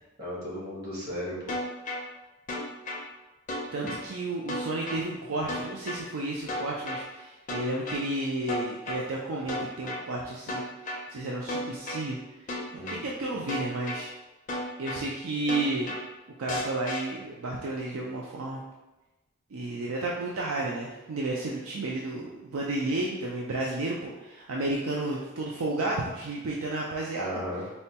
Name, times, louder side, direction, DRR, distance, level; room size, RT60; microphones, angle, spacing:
voice 1, 0.2-1.5 12.7-13.0 27.1-27.6, equal, 50° right, -6 dB, 1.2 m, -35 dB
sound 1, 1.5-2.0 2.5-3.0 3.5-4.0 4.5-5.0 5.5-6.0 6.5-7.0 7.5-8.0 8.5-9.0 9.5-10.0 10.5-11.0 11.5-12.0 12.5-13.0 13.5-14.0 14.5-15.0 15.5-16.0 16.5-17.0, left 1 dB, 40° left, 0.4 m, -33 dB
voice 2, 4.1-10.6 11.1-12.2 12.9-14.1 14.8-15.9 16.4-18.6 19.5-27.3, right 2 dB, 80° right, -2 dB, 0.4 m, -32 dB
4.2 x 2.2 x 2.8 m, 1.0 s
head